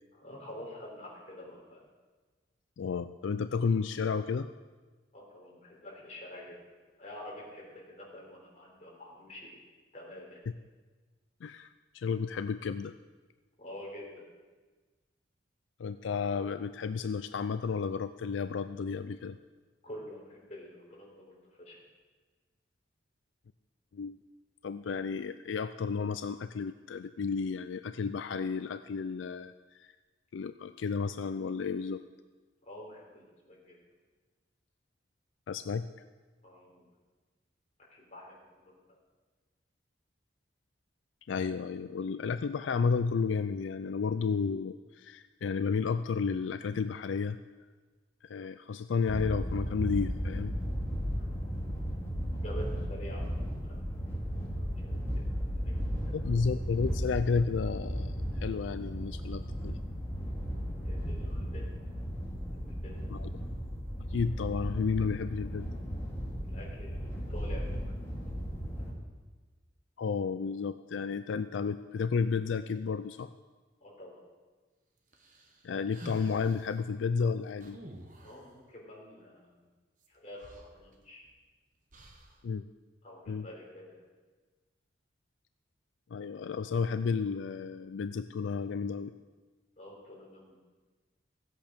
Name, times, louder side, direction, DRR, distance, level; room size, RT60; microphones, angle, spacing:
voice 1, 0.1-1.8 5.1-6.6 7.0-9.6 9.9-10.4 13.6-14.2 19.8-21.8 32.7-33.8 36.4-36.9 37.9-39.0 51.2-51.4 52.4-53.8 54.6-54.9 55.6-55.8 56.0-56.2 60.5-61.7 62.5-63.1 66.4-68.6 73.8-74.2 78.2-79.7 80.1-81.2 83.0-84.0 89.8-90.6, left 1 dB, 40° left, -3 dB, 3.7 m, -48 dB
voice 2, 2.8-4.5 11.4-12.9 15.8-19.4 23.9-24.2 24.6-29.9 30.3-32.0 35.5-35.9 41.3-47.4 48.2-50.6 56.1-59.8 63.1-63.3 64.1-65.7 70.0-73.3 75.6-77.8 82.4-82.6 83.3-83.5 86.1-89.1, left 5 dB, 90° left, 11 dB, 0.4 m, -32 dB
sound 1, 49.1-68.9, equal, 15° left, 2.1 m, -35 dB
sound 2, 75.1-76.7 77.6-78.5 80.0-80.1 80.4-81.4 81.9-82.4, right 1 dB, 45° right, 1.3 m, -49 dB
15.5 x 8.2 x 5.2 m, 1.3 s
head